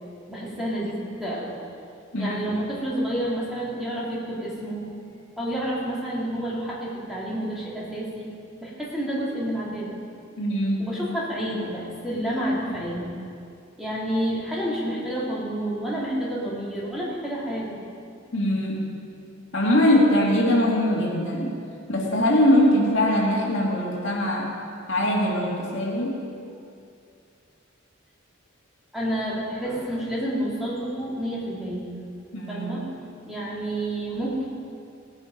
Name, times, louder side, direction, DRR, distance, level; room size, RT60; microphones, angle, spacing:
voice 1, 0.3-1.6 2.2-4.9 5.4-8.2 8.6-10.0 10.8-13.1 13.8-17.8 28.9-31.9 32.5-32.8 33.3-34.5, right 1 dB, ahead, -7 dB, 2.8 m, -29 dB
voice 2, 2.1-2.6 10.4-10.9 18.3-18.8 19.5-21.6 21.9-24.6 24.9-26.2 32.3-32.7, left 1 dB, 65° left, -3 dB, 2.4 m, -22 dB
17.5 x 9.8 x 5.3 m, 2.4 s
head